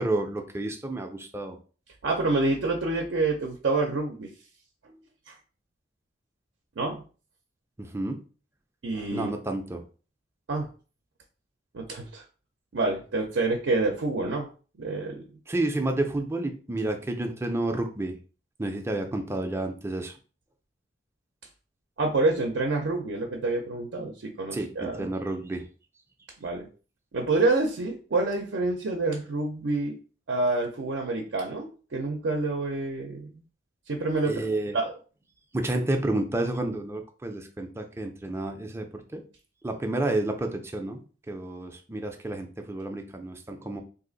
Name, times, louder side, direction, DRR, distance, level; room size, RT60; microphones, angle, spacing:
voice 1, 0.0-1.6 7.8-8.2 9.1-9.8 15.5-18.1 18.6-20.1 24.5-25.6 34.2-34.8 35.5-39.2 39.6-41.0 41.3-43.8, right 2 dB, 15° right, 4 dB, 0.4 m, -30 dB
voice 2, 2.0-4.3 4.8-5.0 5.3-5.4 6.8-7.0 8.8-9.3 10.5-10.7 11.7-12.2 12.7-14.5 14.8-15.2 22.0-25.1 26.4-26.7 27.1-30.0 30.3-33.3 33.9-34.9, right 3 dB, 70° right, 2 dB, 0.5 m, -27 dB
2.6 x 2.4 x 3.8 m, 0.37 s
head